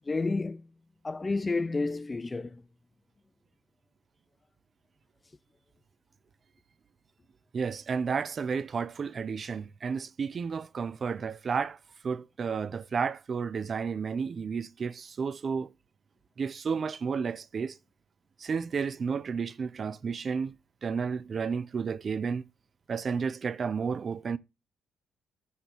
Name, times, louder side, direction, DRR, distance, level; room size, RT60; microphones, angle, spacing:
voice 1, 0.1-0.6 1.0-2.6, left 3 dB, 25° left, 0.4 m, -30 dB
voice 2, 7.5-11.8 12.0-15.7 16.4-17.8 18.4-20.6 20.8-22.4 22.9-24.4, right 5 dB, 45° right, 0.4 m, -32 dB
5.3 x 4.3 x 6.0 m
cardioid pair, 90°, 0 cm